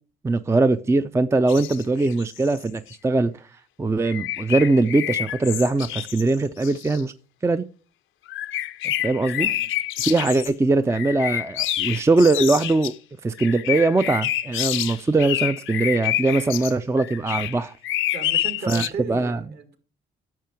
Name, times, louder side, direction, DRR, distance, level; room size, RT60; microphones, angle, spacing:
voice 1, 0.2-3.3 3.8-7.1 7.4-7.6 8.8-9.5 10.0-12.9 13.2-17.7 18.7-19.4, right 3 dB, 15° right, 0.4 m, -21 dB
sound 1, 1.5-2.9 4.0-6.3 6.6-7.0 8.3-10.5 10.9-12.9 13.4-16.7 17.0-18.9, left 13 dB, 80° left, 0.6 m, -28 dB
voice 2, 9.4-9.7 10.2-10.5 18.1-19.8, right 5 dB, 55° right, 2.2 m, -36 dB
10.5 x 6.7 x 4.5 m
cardioid pair, 90°, 20 cm